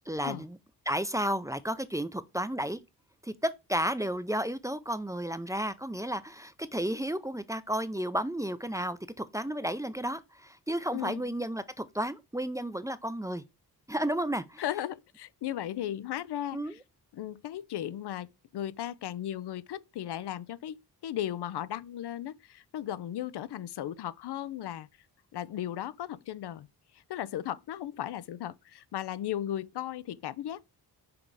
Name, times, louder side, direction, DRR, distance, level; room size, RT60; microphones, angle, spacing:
voice 1, 0.1-0.6 0.9-2.8 3.2-13.4 13.9-14.6 16.5-16.7, right 1 dB, 10° right, 0.4 m, -32 dB
voice 2, 10.9-11.3 14.6-16.8 17.1-24.9 25.3-26.7 26.9-30.6, left 11 dB, 85° left, 0.6 m, -36 dB
6.0 x 3.8 x 4.7 m
wide cardioid pair, 120°, 39 cm